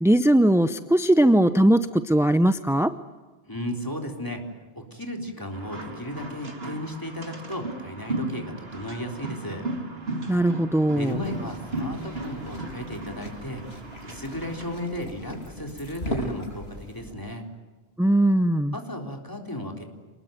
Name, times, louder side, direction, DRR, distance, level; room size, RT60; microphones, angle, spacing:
voice 1, 0.0-2.9 10.3-11.2 18.0-18.7, right 1 dB, 5° right, 11 dB, 0.5 m, -20 dB
voice 2, 3.5-4.4 4.8-9.7 10.9-13.6 14.0-17.4 18.7-19.8, left 1 dB, 15° left, 3 dB, 3.7 m, -34 dB
sound 1, 5.5-14.9, right 2 dB, 60° right, 2.8 m, -36 dB
sound 2, 11.0-17.1, equal, 65° left, 7.3 m, -39 dB
27.5 x 20.0 x 9.1 m, 1.3 s
omnidirectional pair, 1.2 m